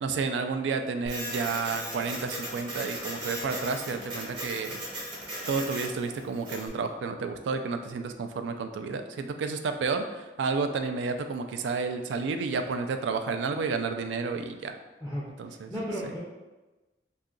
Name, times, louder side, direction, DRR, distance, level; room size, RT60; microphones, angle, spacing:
voice 1, 0.0-4.8 5.5-14.8 15.4-15.7, right 4 dB, 85° right, 7 dB, 0.3 m, -31 dB
Printer, 1.1-6.7, right 1 dB, 30° right, 0.8 m, -37 dB
voice 2, 15.0-16.2, equal, ahead, -6 dB, 0.4 m, -35 dB
2.7 x 2.4 x 3.7 m, 1.1 s
head